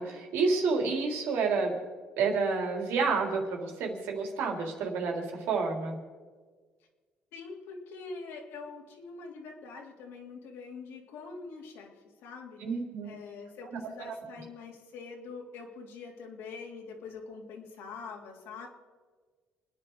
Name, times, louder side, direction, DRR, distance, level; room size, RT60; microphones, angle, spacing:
voice 1, 0.0-1.8 2.2-6.0 12.6-13.2 14.0-14.1, right 4 dB, 85° right, 1 dB, 3.8 m, -29 dB
voice 2, 7.3-12.6 13.0-18.7, left 4 dB, 85° left, 1 dB, 3.2 m, -44 dB
29.0 x 10.0 x 4.8 m, 1.5 s
cardioid pair, 120°, 4 cm